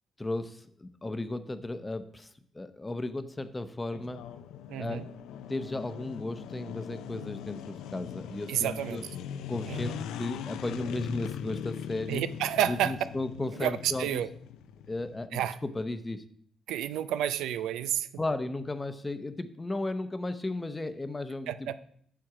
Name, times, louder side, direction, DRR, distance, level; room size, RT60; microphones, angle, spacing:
voice 1, 0.2-4.2 4.8-5.1 5.5-9.0 9.5-12.2 12.7-14.1 14.9-16.2 18.2-21.7, left 2 dB, 20° left, 11 dB, 0.8 m, -35 dB
sound 1, 3.9-15.3, left 9 dB, 90° left, 0.5 m, -41 dB
voice 2, 4.7-5.0 8.5-9.0 9.7-10.0 12.1-13.0 13.5-14.3 15.3-15.6 16.7-18.1 21.5-21.7, right 11 dB, 90° right, 13 dB, 0.5 m, -30 dB
7.7 x 7.0 x 4.9 m, 0.65 s
cardioid pair, 90°, 0 cm